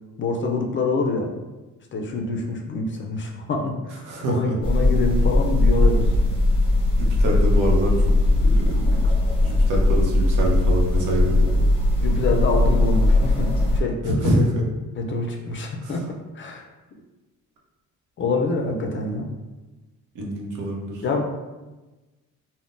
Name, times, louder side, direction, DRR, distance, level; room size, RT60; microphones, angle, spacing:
voice 1, 0.2-1.3 1.9-4.0 4.3-6.1 12.0-14.3 15.0-16.0 16.4-16.6 18.2-19.3 21.0-21.2, left 3 dB, 35° left, 2 dB, 0.4 m, -26 dB
voice 2, 4.0-4.5 7.0-9.1 9.4-11.7 14.0-14.6 15.8-16.0 20.1-21.0, right 1 dB, 65° right, -1 dB, 0.9 m, -26 dB
sound 1, 4.6-13.8, left 2 dB, 15° left, 0.8 m, -19 dB
3.6 x 2.1 x 2.5 m, 1.2 s
cardioid pair, 100°, 34 cm